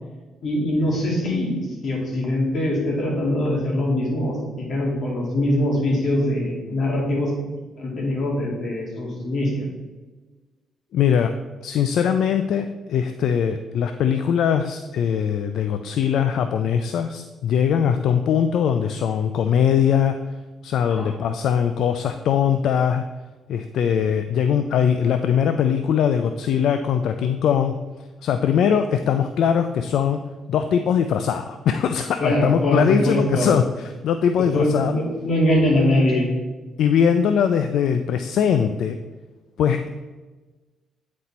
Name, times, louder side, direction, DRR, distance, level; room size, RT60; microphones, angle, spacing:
voice 1, 0.4-7.3 7.8-9.7 20.9-21.1 32.2-33.5 34.5-36.3, left 1 dB, 55° left, -2 dB, 2.4 m, -22 dB
voice 2, 10.9-11.3 11.6-20.2 20.6-23.0 23.5-27.8 28.2-30.2 30.5-34.9 36.8-39.0 39.6-39.9, left 8 dB, 75° left, 8 dB, 0.4 m, -21 dB
9.2 x 4.2 x 4.2 m, 1.2 s
cardioid pair, 90°, 0 cm